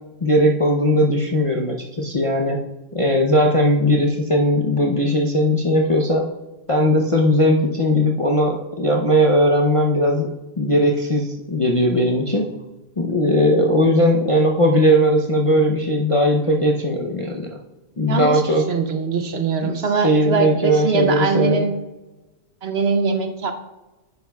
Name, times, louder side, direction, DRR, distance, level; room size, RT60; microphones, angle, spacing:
voice 1, 0.2-2.6 2.9-6.2 6.7-10.3 10.6-12.5 13.0-17.5 18.0-18.6 19.6-19.7 20.0-21.6, equal, 35° left, -1 dB, 0.5 m, -18 dB
voice 2, 18.1-21.8 22.6-23.5, right 5 dB, 55° right, 6 dB, 0.8 m, -22 dB
10.5 x 8.7 x 2.3 m, 1.1 s
omnidirectional pair, 1.4 m